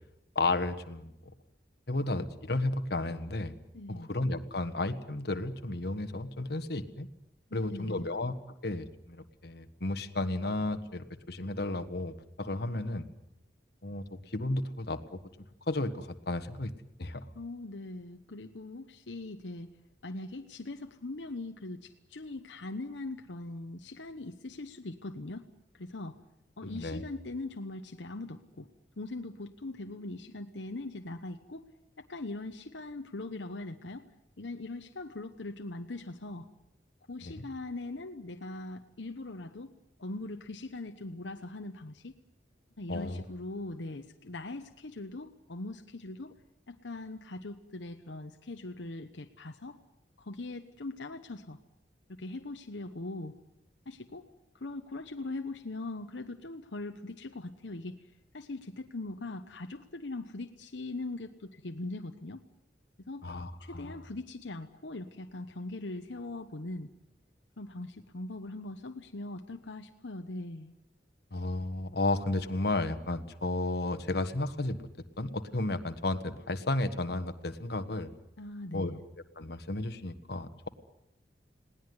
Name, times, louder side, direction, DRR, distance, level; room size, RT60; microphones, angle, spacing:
voice 1, 0.3-1.1 1.9-3.6 3.9-7.1 7.5-8.3 8.6-13.0 13.8-15.2 15.7-16.7 17.0-17.2 26.6-27.0 37.2-37.4 42.9-43.2 63.2-64.0 71.3-74.8 75.2-78.1 78.7-78.9 79.4-80.7, left 2 dB, 60° left, 9 dB, 1.4 m, -33 dB
voice 2, 3.7-4.1 7.5-8.1 17.3-19.7 20.0-25.5 25.7-26.2 26.6-28.7 29.0-31.6 32.0-34.0 34.4-36.5 37.1-39.7 40.0-42.1 42.8-46.3 46.7-49.8 50.2-51.6 52.1-53.4 53.9-54.3 54.5-58.0 58.3-62.4 63.1-63.2 63.6-66.9 67.6-70.7 78.4-79.0, left 2 dB, 80° left, 6 dB, 1.1 m, -41 dB
20.5 x 18.0 x 9.6 m, 0.84 s
head